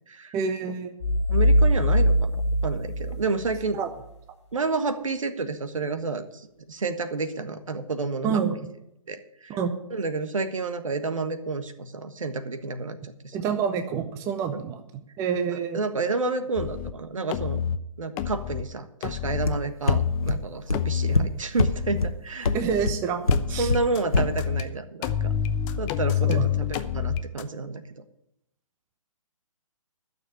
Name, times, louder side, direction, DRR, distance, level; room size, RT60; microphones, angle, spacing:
voice 1, 0.3-1.0 3.7-3.9 8.2-8.6 9.5-9.7 13.3-15.8 22.5-23.2 23.5-23.7 26.2-26.5, right 7 dB, 15° right, 7 dB, 0.8 m, -27 dB
sound 1, 1.0-3.7, equal, 50° left, 1.3 m, -22 dB
voice 2, 1.3-3.8 4.5-8.4 9.1-9.6 9.9-13.5 14.5-14.6 15.5-17.6 18.0-22.5 23.5-25.3 25.8-28.0, right 3 dB, 65° right, 10 dB, 1.4 m, -30 dB
sound 2, 16.6-16.9 17.3-17.8 18.2-18.6 19.0-19.5 19.9-20.3 20.7-21.2 21.6-22.1 22.5-22.9 23.3-24.6 25.0-27.4, left 9 dB, 15° left, 0.4 m, -28 dB
sound 3, 19.5-19.6 19.9-20.0 20.3-20.4 20.7-20.8 21.1-21.2 21.6-21.7 22.0-22.1 22.4-22.5 22.8-22.9 23.3-23.4 23.7-23.8 24.1-24.2, left 3 dB, 90° left, 1.2 m, -20 dB
12.0 x 6.8 x 8.8 m, 0.80 s
figure-of-eight pair, 135°, 18 cm